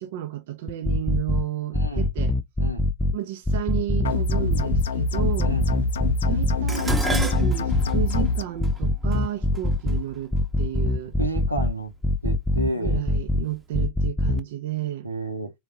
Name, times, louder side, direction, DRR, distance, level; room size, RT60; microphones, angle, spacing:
voice 1, 0.0-2.4 3.1-5.5 6.3-11.2 12.7-15.1, right 13 dB, 50° right, 0.5 m, -32 dB
sound 1, 0.7-1.4 1.7-3.1 3.5-4.8 5.2-6.6 6.9-8.3 8.6-10.0 10.3-11.7 12.0-13.4 13.7-14.4, left 2 dB, 5° left, 0.4 m, -23 dB
voice 2, 1.7-2.1 2.6-2.9 5.4-5.7 11.2-11.9 12.2-13.0 15.0-15.5, right 2 dB, 85° right, 0.9 m, -30 dB
sound 2, 4.0-8.4, left 4 dB, 65° left, 0.5 m, -26 dB
Dishes pots and pans, 6.7-11.0 11.9-12.3 12.7-13.6 13.8-13.9, right 2 dB, 10° right, 0.9 m, -34 dB
3.6 x 2.8 x 3.4 m
figure-of-eight pair, 90°, 0 cm